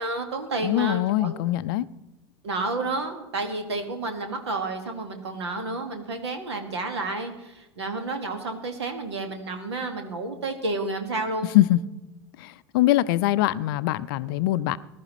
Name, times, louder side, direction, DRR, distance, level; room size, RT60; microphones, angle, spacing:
voice 1, 0.0-1.4 2.4-11.5, right 2 dB, 70° right, 1.8 m, -30 dB
voice 2, 0.6-1.9 11.5-11.8 12.4-14.8, left 15 dB, 50° left, 0.5 m, -23 dB
19.5 x 11.5 x 3.1 m
figure-of-eight pair, 80°, 15 cm